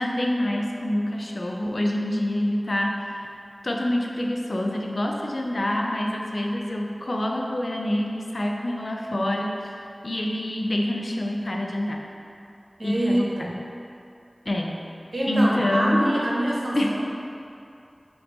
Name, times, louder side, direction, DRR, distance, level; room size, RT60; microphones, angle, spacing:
voice 1, 0.0-3.3 3.6-9.7 10.0-12.0 12.8-13.5 14.5-14.8 15.3-16.1 16.7-16.9, left 1 dB, 65° left, 0 dB, 0.4 m, -26 dB
voice 2, 12.8-13.5 15.1-17.0, right 1 dB, 85° right, -5 dB, 0.8 m, -25 dB
5.6 x 2.6 x 3.6 m, 2.6 s
wide cardioid pair, 50°, 0 cm